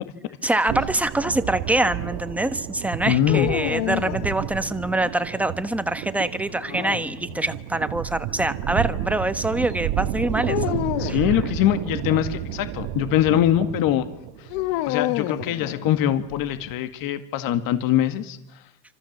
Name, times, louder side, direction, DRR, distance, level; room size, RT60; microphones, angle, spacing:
voice 1, 0.4-10.6 11.0-11.2, right 2 dB, 5° right, 10 dB, 1.2 m, -25 dB
sound 1, 0.7-16.8, right 12 dB, 70° right, 1.7 m, -31 dB
voice 2, 3.1-3.5 11.0-14.1 14.4-14.5 14.9-18.6, left 11 dB, 60° left, 9 dB, 2.1 m, -23 dB
sound 2, 3.3-4.8 6.5-7.6 10.5-11.3 14.5-16.2, left 17 dB, 80° left, 1.2 m, -29 dB
29.0 x 26.0 x 7.4 m, 0.90 s
cardioid pair, 145°, 39 cm